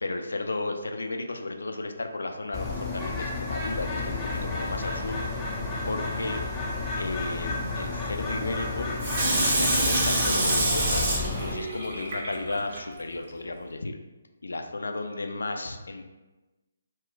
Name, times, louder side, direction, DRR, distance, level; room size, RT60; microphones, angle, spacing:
voice 1, 0.0-5.2 5.9-6.4 7.0-8.9 9.3-14.0 14.4-16.0, left 2 dB, 70° left, 5 dB, 0.3 m, -34 dB
Bird, 2.5-11.5, left 3 dB, 10° left, 0.6 m, -32 dB
Water tap faucet / Sink (filling or washing), 9.0-12.8 13.3-13.4, right 2 dB, 45° right, 0.8 m, -26 dB
2.3 x 2.2 x 3.7 m, 1.1 s
figure-of-eight pair, 140°, 0 cm